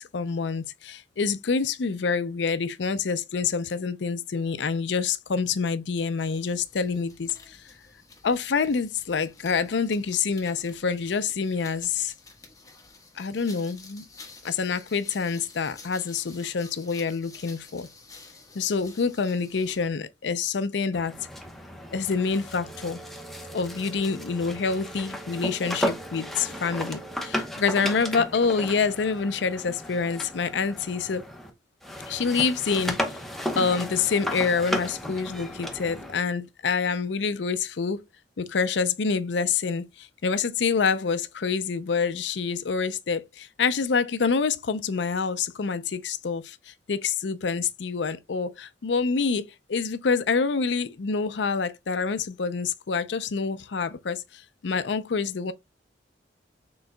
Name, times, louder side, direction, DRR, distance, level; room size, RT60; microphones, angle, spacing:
voice 1, 0.0-7.6 8.2-12.1 13.2-14.0 14.4-17.9 18.5-21.1 21.9-23.0 23.5-31.2 32.1-33.0 33.6-38.0 38.4-55.5, left 5 dB, 75° left, 0.5 m, -27 dB
sound 1, 6.2-19.9, left 3 dB, 20° left, 1.3 m, -50 dB
sound 2, 20.9-31.5 31.8-36.2, left 1 dB, ahead, 0.8 m, -34 dB
sound 3, 22.6-27.5, right 9 dB, 50° right, 0.8 m, -48 dB
6.3 x 3.8 x 2.2 m
head